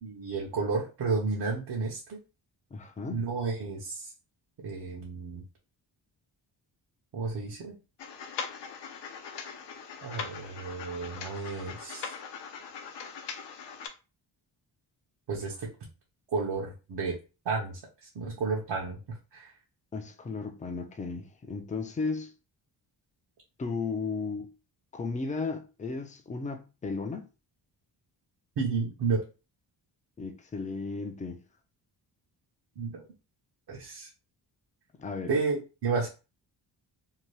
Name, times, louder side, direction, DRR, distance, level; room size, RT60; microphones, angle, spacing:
voice 1, 0.0-2.2 3.1-4.1 4.6-5.4 7.1-7.8 10.0-12.1 15.3-15.7 16.3-17.2 17.4-19.0 19.3-19.5 28.6-29.2 32.8-33.0 33.7-34.1 35.3-36.1, right 4 dB, 65° right, 0.8 m, -32 dB
voice 2, 2.7-3.2 19.9-22.3 23.6-24.5 24.9-27.3 30.2-31.4 35.0-35.4, left 4 dB, 20° left, 0.4 m, -35 dB
sound 1, 8.0-13.9, left 6 dB, 70° left, 0.7 m, -41 dB
2.8 x 2.2 x 3.1 m
wide cardioid pair, 125°, 43 cm